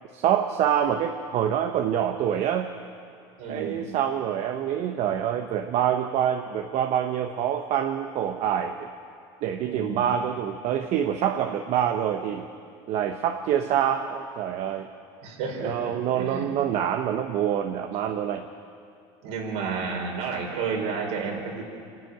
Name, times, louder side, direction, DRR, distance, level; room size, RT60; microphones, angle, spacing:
voice 1, 0.1-2.7 3.5-8.9 9.4-12.5 12.9-14.9 15.6-18.5, right 9 dB, 55° right, 5 dB, 1.1 m, -26 dB
voice 2, 3.4-3.9 9.6-10.0 15.2-16.6 19.2-21.6, right 5 dB, 75° right, 0 dB, 4.8 m, -31 dB
26.5 x 11.0 x 9.4 m, 2.4 s
supercardioid pair, 105°, 13 cm